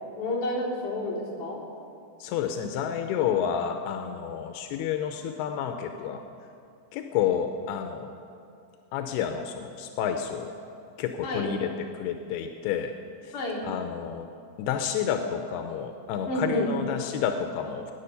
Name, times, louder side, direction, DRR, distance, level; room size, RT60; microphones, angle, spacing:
voice 1, 0.2-1.6 11.2-11.5 13.3-13.7 16.3-16.7, left 1 dB, 50° left, -6 dB, 5.0 m, -30 dB
voice 2, 2.2-6.2 6.9-8.1 8.9-10.5 11.0-11.7 11.9-12.9 13.2-13.3 13.6-14.3 14.6-17.9, left 8 dB, 85° left, 6 dB, 2.7 m, -30 dB
19.5 x 10.0 x 6.9 m, 2.4 s
omnidirectional pair, 4.6 m